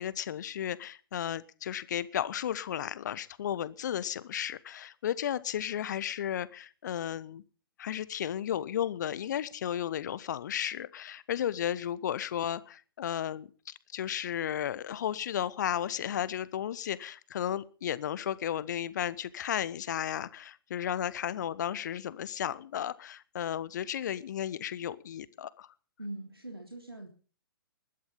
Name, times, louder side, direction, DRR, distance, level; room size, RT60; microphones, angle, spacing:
voice 1, 0.0-7.4 7.8-25.7, left 10 dB, 50° left, 18 dB, 1.2 m, -34 dB
voice 2, 26.0-27.1, right 1 dB, 85° right, 4 dB, 3.3 m, -42 dB
20.5 x 12.0 x 5.5 m, 0.38 s
figure-of-eight pair, 120°, 12 cm